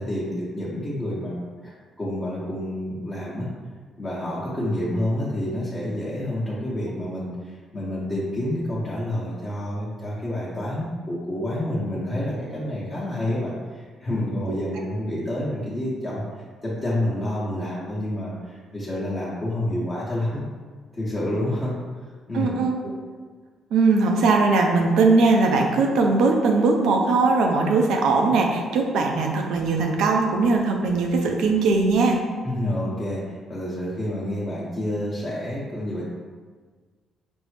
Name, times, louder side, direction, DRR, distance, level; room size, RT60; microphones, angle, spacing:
voice 1, 0.0-1.4 1.6-1.7 2.0-3.5 4.0-20.5 20.9-21.8 22.3-22.5 32.4-36.0, left 1 dB, 25° left, -8 dB, 0.8 m, -28 dB
voice 2, 22.3-22.7 23.7-32.2, right 3 dB, 85° right, 2 dB, 0.5 m, -20 dB
5.2 x 2.1 x 3.2 m, 1.5 s
cardioid pair, 90°, 0 cm